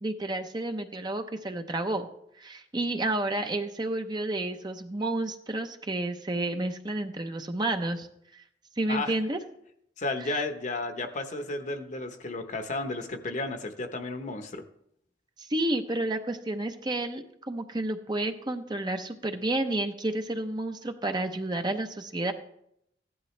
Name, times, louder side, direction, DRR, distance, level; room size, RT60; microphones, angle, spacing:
voice 1, 0.0-2.1 2.4-8.1 8.3-8.4 8.8-9.4 15.4-22.3, right 2 dB, 25° right, 6 dB, 0.7 m, -30 dB
voice 2, 10.0-14.6, left 2 dB, 40° left, 7 dB, 1.0 m, -33 dB
15.0 x 11.0 x 3.3 m, 0.74 s
head